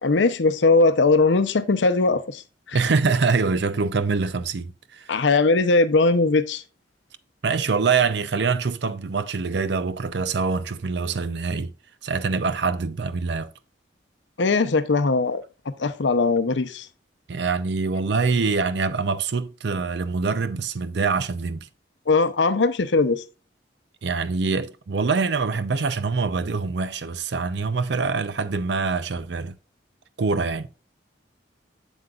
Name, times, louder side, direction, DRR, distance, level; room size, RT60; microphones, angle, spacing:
voice 1, 0.0-2.4 2.7-2.8 5.1-6.6 14.4-15.4 15.8-16.9 22.1-23.2, left 3 dB, 85° left, 0.7 m, -20 dB
voice 2, 2.7-5.1 7.4-11.7 12.0-13.5 17.3-21.7 24.0-29.5 30.2-30.7, right 4 dB, 70° right, 0.5 m, -24 dB
7.7 x 7.2 x 2.4 m
head